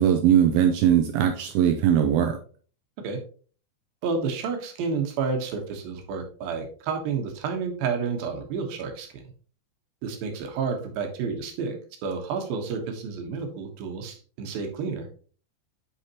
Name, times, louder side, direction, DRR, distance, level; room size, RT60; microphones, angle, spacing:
voice 1, 0.0-2.4, right 9 dB, 85° right, 5 dB, 2.1 m, -20 dB
voice 2, 4.0-9.2 10.0-11.8 12.0-15.1, right 5 dB, 65° right, 4 dB, 2.8 m, -30 dB
9.8 x 4.9 x 2.9 m, 0.41 s
omnidirectional pair, 5.0 m